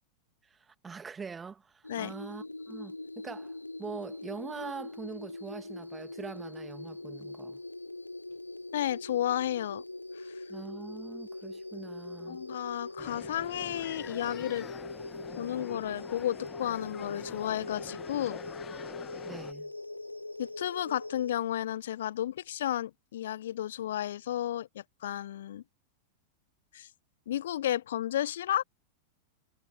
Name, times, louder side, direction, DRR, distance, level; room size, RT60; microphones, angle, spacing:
voice 1, 0.4-7.6 10.5-12.4 19.2-19.7, right 5 dB, 15° right, 2.4 m, -43 dB
sound 1, 1.8-21.3, left 2 dB, 85° left, 1.0 m, -42 dB
voice 2, 8.7-9.8 10.2-10.3 12.3-14.7 15.4-18.4 20.4-25.6 26.7-26.9 27.3-28.6, left 12 dB, 60° left, 0.5 m, -33 dB
sound 2, 13.0-19.5, left 8 dB, 25° left, 1.6 m, -46 dB
figure-of-eight pair, 90°, 0 cm